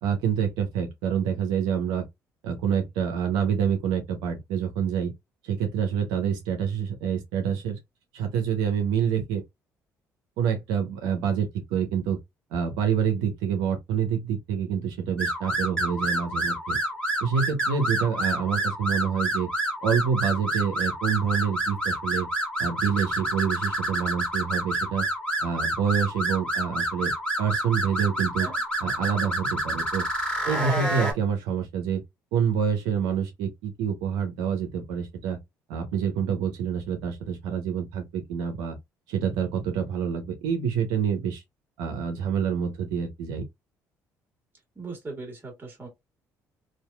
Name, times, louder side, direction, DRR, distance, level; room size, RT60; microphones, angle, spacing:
voice 1, 0.0-2.1 2.4-5.1 5.4-7.8 8.1-9.4 10.4-12.2 12.5-16.8 17.2-19.5 19.8-22.3 22.6-25.1 25.4-27.1 27.4-28.5 28.8-30.1 30.5-32.0 32.3-35.4 35.7-38.8 39.1-41.4 41.8-43.4, right 7 dB, 85° right, 0.7 m, -27 dB
sound 1, 15.2-31.1, right 1 dB, 10° left, 1.5 m, -28 dB
voice 2, 44.7-45.9, right 3 dB, 30° right, 1.7 m, -39 dB
2.8 x 2.5 x 2.2 m
supercardioid pair, 65°, 8 cm